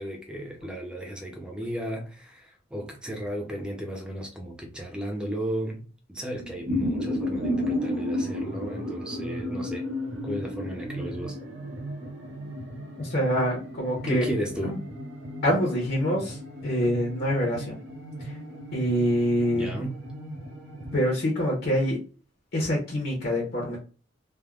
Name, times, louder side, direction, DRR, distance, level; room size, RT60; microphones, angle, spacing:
voice 1, 0.0-9.9 10.2-11.4 14.1-14.8 19.5-20.0, right 1 dB, 5° right, 0.5 m, -34 dB
sound 1, 6.3-21.1, left 1 dB, 70° right, 0.8 m, -34 dB
voice 2, 13.0-14.3 14.6-14.8 15.4-17.8 18.2-18.4 18.7-19.7 20.9-22.0 22.5-23.8, equal, 50° left, 0.8 m, -26 dB
3.4 x 2.1 x 2.3 m
head